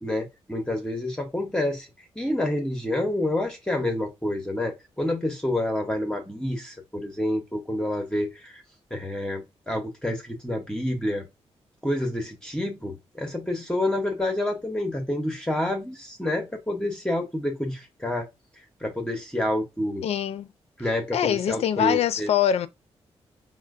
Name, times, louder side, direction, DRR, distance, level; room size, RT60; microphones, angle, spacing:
voice 1, 0.0-1.9 2.2-8.6 8.9-11.3 11.8-18.3 18.8-20.0 20.8-22.3, left 1 dB, 10° left, 0.7 m, -28 dB
voice 2, 20.0-20.5 21.1-22.7, left 9 dB, 70° left, 0.4 m, -23 dB
4.2 x 2.0 x 2.4 m
cardioid pair, 85°, 11 cm